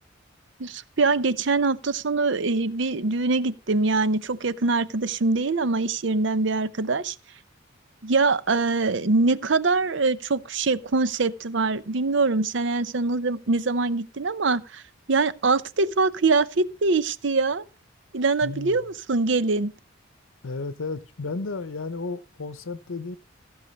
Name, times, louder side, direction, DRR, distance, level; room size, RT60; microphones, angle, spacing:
voice 1, 0.6-7.2 8.0-14.8 15.1-17.6 18.1-19.7, right 3 dB, 65° right, 0.7 m, -23 dB
voice 2, 18.4-18.8 20.4-23.2, left 3 dB, 80° left, 0.8 m, -33 dB
15.5 x 6.5 x 5.3 m
head